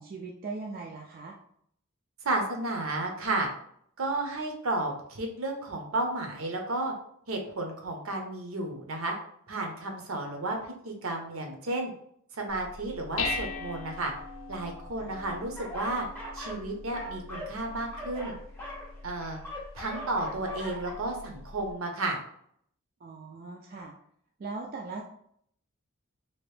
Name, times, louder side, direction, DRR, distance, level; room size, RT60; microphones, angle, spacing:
voice 1, 0.0-1.3 15.0-15.1 23.0-23.9 24.4-25.0, right 3 dB, 40° right, -1 dB, 0.3 m, -39 dB
voice 2, 2.2-3.5 4.0-6.9 7.3-9.1 9.5-10.6 10.8-11.9 12.3-14.1 14.5-16.1 16.3-18.3 19.0-19.4 19.7-22.2, right 2 dB, 65° right, 3 dB, 0.7 m, -32 dB
Dishes pots and pans, 12.5-21.7, left 3 dB, 65° left, 0.5 m, -41 dB
sound 1, 15.6-16.6 16.9-20.9, equal, 5° left, 0.7 m, -40 dB
2.9 x 2.6 x 3.2 m, 0.67 s
head